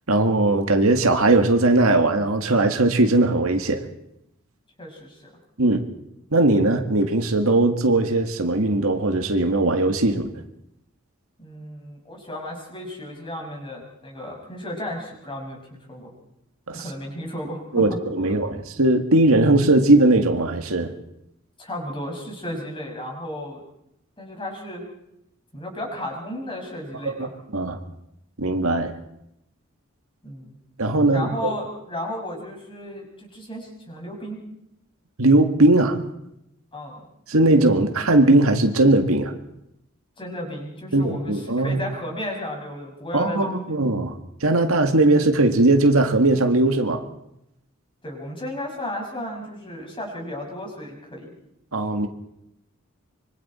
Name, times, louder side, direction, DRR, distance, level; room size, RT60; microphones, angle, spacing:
voice 1, 0.1-3.8 5.6-5.8 6.3-10.3 16.7-16.8 17.7-20.9 27.2-27.8 28.4-28.9 30.8-31.5 35.2-36.0 37.3-39.4 40.9-41.8 43.1-44.1 44.4-47.0 51.7-52.1, right 2 dB, 85° right, 6 dB, 1.9 m, -19 dB
voice 2, 4.8-5.3 11.4-16.1 16.7-18.3 21.6-23.6 24.2-24.8 25.5-27.3 30.2-30.5 31.0-34.4 36.7-37.0 40.2-43.6 48.0-51.3, left 1 dB, 25° left, 0 dB, 6.1 m, -34 dB
25.0 x 24.0 x 4.4 m, 0.81 s
head